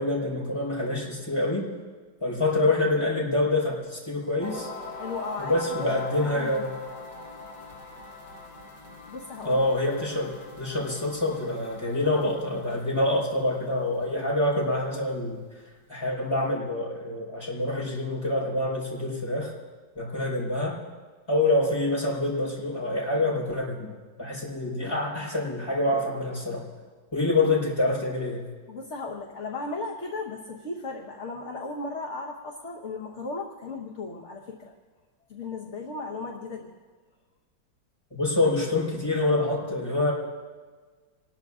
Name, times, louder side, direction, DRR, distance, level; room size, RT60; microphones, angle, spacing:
voice 1, 0.0-1.7 2.2-4.7 5.4-6.7 9.4-15.4 15.9-19.5 20.0-20.8 21.3-26.6 27.1-28.4 38.1-40.1, left 2 dB, 15° left, -5 dB, 4.8 m, -26 dB
sound 1, 4.4-14.3, left 2 dB, 80° left, 4.6 m, -42 dB
voice 2, 4.9-5.9 6.2-6.6 9.1-9.6 28.7-34.7 35.3-36.7, left 3 dB, 45° left, 0 dB, 1.3 m, -36 dB
27.0 x 20.5 x 2.5 m, 1.5 s
omnidirectional pair, 2.0 m